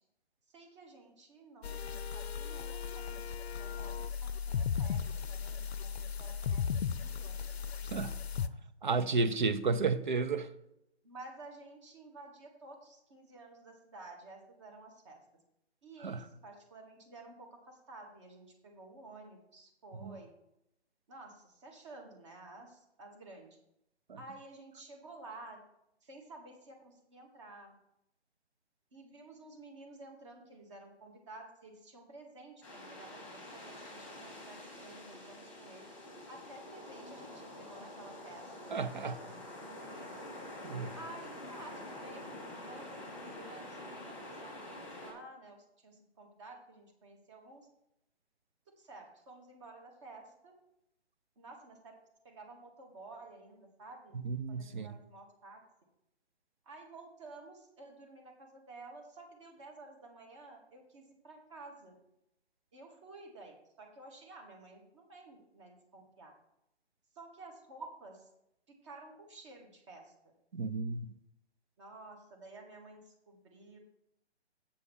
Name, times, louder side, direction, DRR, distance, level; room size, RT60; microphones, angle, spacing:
voice 1, 0.5-5.0 5.3-8.1 8.4-8.5 11.0-15.2 15.8-20.3 21.1-23.6 24.2-25.6 26.0-27.7 28.9-35.9 36.3-40.2 41.0-47.7 48.8-50.5 51.4-51.9 52.2-54.2 54.5-55.6 56.6-61.9 62.7-66.3 67.1-68.3 68.8-70.1 71.8-73.8, right 2 dB, 25° right, 1.4 m, -52 dB
sound 1, 1.6-8.5, left 7 dB, 65° left, 0.6 m, -36 dB
voice 2, 8.8-10.5 16.0-16.3 20.0-20.2 24.1-24.2 38.7-39.2 40.6-40.9 54.1-55.0 70.5-71.1, right 4 dB, 45° right, 0.6 m, -32 dB
sound 2, 32.6-45.1, left 1 dB, 5° left, 1.4 m, -47 dB
7.3 x 4.8 x 6.9 m
hypercardioid pair, 160°, 33 cm